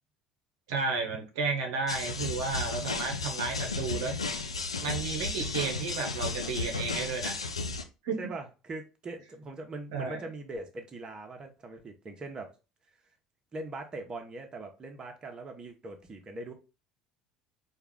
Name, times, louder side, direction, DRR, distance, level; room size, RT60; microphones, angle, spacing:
voice 1, 0.7-4.1 4.8-7.4 8.0-8.2 9.9-10.2, right 4 dB, 70° right, 0.8 m, -32 dB
sound 1, 1.9-7.8, left 3 dB, 85° left, 0.4 m, -34 dB
voice 2, 8.2-12.5 13.5-16.5, right 2 dB, 30° right, 1.0 m, -41 dB
4.5 x 2.4 x 3.7 m
figure-of-eight pair, 65°, 3 cm